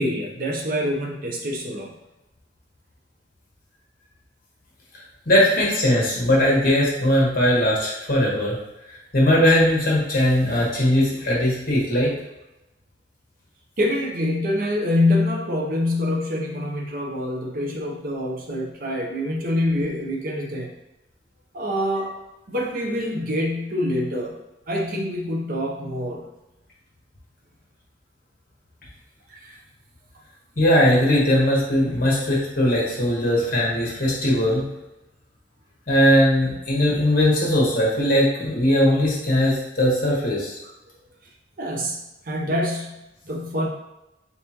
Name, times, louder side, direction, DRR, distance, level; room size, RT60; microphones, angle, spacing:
voice 1, 0.0-1.9 13.8-20.7 21.5-22.1 22.5-24.4 24.7-26.2 29.3-29.6 41.6-42.0 42.2-42.9 43.2-43.7, left 1 dB, 55° right, 0 dB, 0.7 m, -25 dB
voice 2, 5.3-8.6 9.1-12.1 30.6-34.6 35.9-40.5, left 1 dB, 55° left, -4 dB, 1.4 m, -19 dB
4.1 x 3.5 x 2.9 m, 0.97 s
head